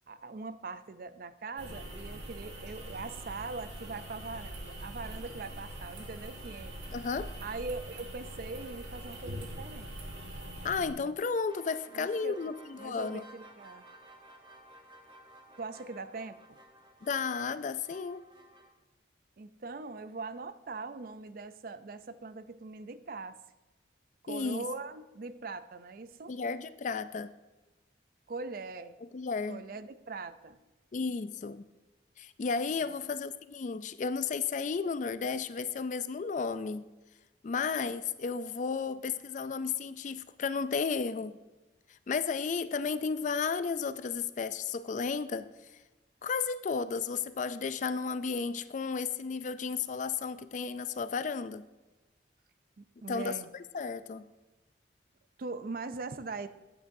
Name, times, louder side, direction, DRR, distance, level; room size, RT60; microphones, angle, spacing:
voice 1, 0.1-6.8 7.4-9.9 11.9-12.5 12.8-13.8 15.6-16.6 19.4-23.4 24.2-26.4 28.3-29.0 29.5-30.6 32.8-33.0 52.8-53.5 55.4-56.5, right 3 dB, 50° right, 12 dB, 0.4 m, -41 dB
sound 1, 1.6-10.9, right 1 dB, 70° right, 1.6 m, -43 dB
voice 2, 6.9-7.3 10.6-13.2 17.0-18.2 24.3-24.6 26.3-27.3 29.1-29.6 30.9-31.7 32.2-36.8 37.4-41.4 42.1-45.5 46.2-51.6 53.1-53.4 53.7-54.3, left 5 dB, 40° left, 13 dB, 0.3 m, -33 dB
sound 2, 11.5-18.7, right 1 dB, 25° right, 0.9 m, -55 dB
13.0 x 8.9 x 2.6 m, 1.1 s
head